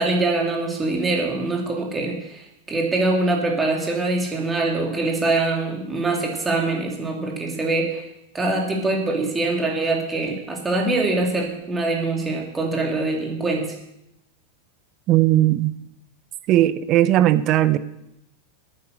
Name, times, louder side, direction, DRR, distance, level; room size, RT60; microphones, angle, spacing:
voice 1, 0.0-8.0 8.3-13.7, right 2 dB, 15° right, 0 dB, 2.8 m, -23 dB
voice 2, 15.1-15.7 16.5-17.8, right 14 dB, 35° right, 14 dB, 0.7 m, -17 dB
8.9 x 8.6 x 6.8 m, 0.83 s
figure-of-eight pair, 90°, 0 cm